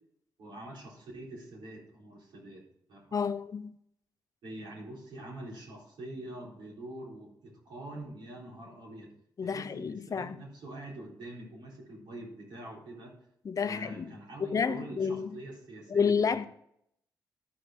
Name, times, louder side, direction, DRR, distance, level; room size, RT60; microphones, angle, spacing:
voice 1, 0.4-2.6 2.9-3.3 4.4-9.1 9.4-13.1 13.5-16.5, right 1 dB, 80° right, 4.0 m, -45 dB
voice 2, 3.1-3.7 9.4-10.4 13.4-14.2 14.5-15.3 15.9-16.4, left 6 dB, 45° left, 0.6 m, -30 dB
12.5 x 5.2 x 5.0 m
cardioid pair, 80°, 8 cm